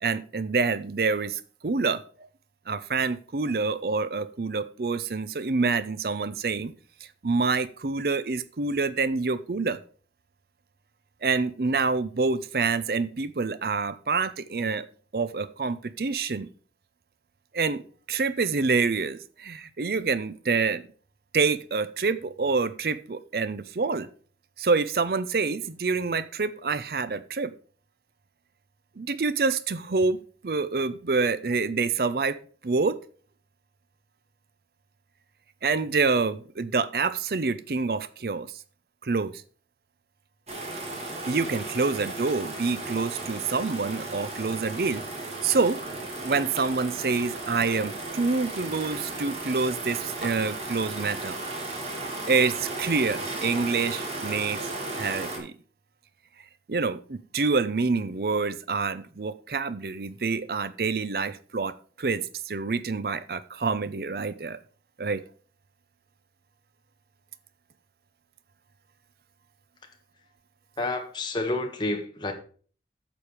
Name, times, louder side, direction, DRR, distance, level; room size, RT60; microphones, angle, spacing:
voice 1, 0.0-2.3 2.7-6.7 7.2-9.8 11.2-14.9 15.1-16.5 17.5-17.8 18.1-20.8 21.3-24.1 24.6-27.5 29.0-32.4 32.6-33.0 35.6-38.5 39.0-39.3 41.3-45.0 45.4-45.8 46.2-51.4 52.3-54.7 55.0-55.5 56.7-64.6 65.0-65.2, right 4 dB, 60° right, 0.5 m, -27 dB
sound 1, 40.5-55.4, right 2 dB, 35° right, 2.5 m, -35 dB
voice 2, 70.8-72.3, left 2 dB, 25° left, 1.8 m, -29 dB
9.2 x 7.1 x 4.9 m
head